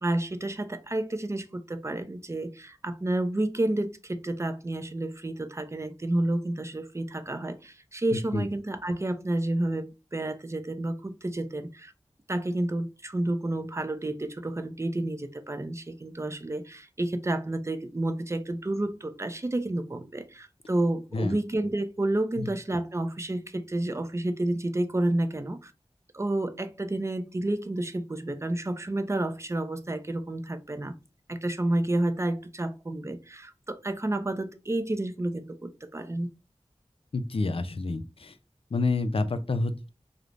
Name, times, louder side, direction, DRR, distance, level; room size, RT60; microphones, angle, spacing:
voice 1, 0.0-11.9 12.3-25.7 26.1-31.0 31.3-36.3, right 1 dB, 25° right, 0.4 m, -30 dB
voice 2, 8.1-8.5 21.1-21.4 22.4-22.5 37.1-38.4 38.7-39.9, left 3 dB, 55° left, 0.4 m, -28 dB
2.4 x 2.0 x 3.1 m
wide cardioid pair, 55°, 11 cm